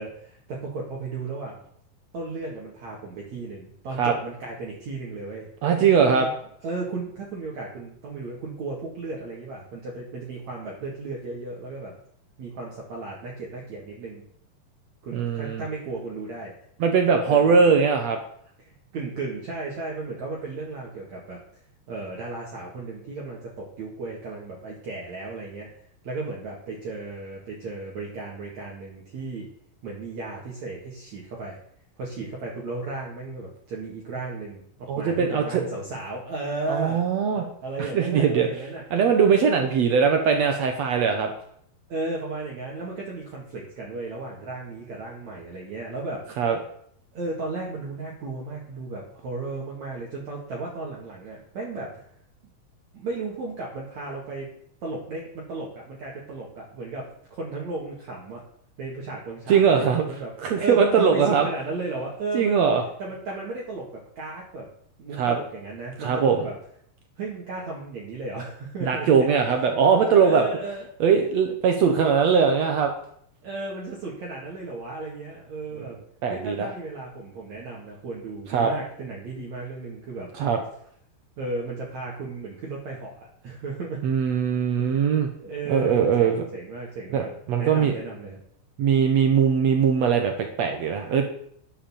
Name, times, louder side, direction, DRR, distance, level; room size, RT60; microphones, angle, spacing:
voice 1, 0.0-1.6 2.1-5.5 5.7-6.3 6.6-11.9 12.4-14.2 15.0-16.5 17.3-17.7 18.6-21.4 21.9-25.7 26.0-29.5 29.8-31.6 32.0-37.0 37.3-38.8 41.9-46.3 47.1-52.1 52.9-54.5 54.8-58.4 58.8-62.7 63.0-64.7 65.0-66.5 67.2-69.3 70.2-70.9 73.4-76.0 76.3-80.3 81.4-84.1 85.4-88.4, right 3 dB, 55° right, -3 dB, 2.9 m, -35 dB
voice 2, 5.6-6.3 15.1-15.6 16.8-18.2 34.9-35.6 36.7-37.4 37.8-38.5 38.9-41.3 46.4-46.6 59.5-60.0 60.4-61.5 62.3-62.8 65.2-65.4 66.0-66.4 68.8-70.4 71.0-72.9 76.2-76.7 78.5-78.7 80.4-80.6 84.0-85.3 85.7-86.4 87.1-87.9 88.8-91.3, right 6 dB, 70° right, 4 dB, 1.7 m, -21 dB
10.5 x 6.9 x 7.2 m, 0.66 s
omnidirectional pair, 4.3 m